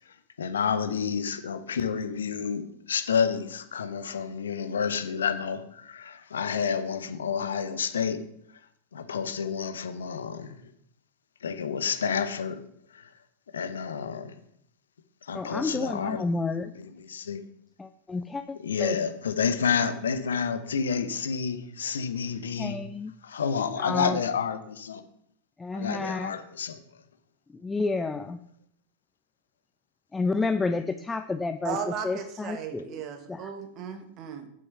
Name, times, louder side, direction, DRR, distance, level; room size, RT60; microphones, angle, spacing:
voice 1, 0.4-8.2 8.9-10.5 11.4-12.6 12.9-13.1 13.5-14.3 15.2-17.4 18.5-22.8 23.2-25.0 25.7-26.8, left 6 dB, 65° left, 10 dB, 0.9 m, -29 dB
voice 2, 15.3-16.7 17.8-18.9 22.6-23.1 23.8-24.2 25.6-26.3 27.6-28.4 30.1-31.8 32.0-32.9 33.3-33.4, left 3 dB, 10° left, 10 dB, 0.4 m, -30 dB
voice 3, 31.6-34.5, right 7 dB, 35° right, 7 dB, 1.4 m, -36 dB
7.6 x 6.5 x 5.6 m, 0.71 s
figure-of-eight pair, 90°, 0 cm